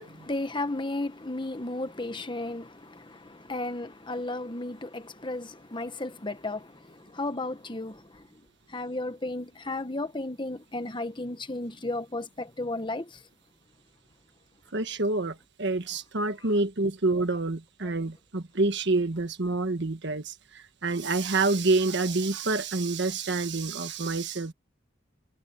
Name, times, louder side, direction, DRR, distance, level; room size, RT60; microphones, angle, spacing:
voice 1, 0.0-8.3 8.7-13.2, left 2 dB, 25° left, 1.2 m, -34 dB
voice 2, 14.7-24.5, right 3 dB, 55° right, 1.5 m, -27 dB
head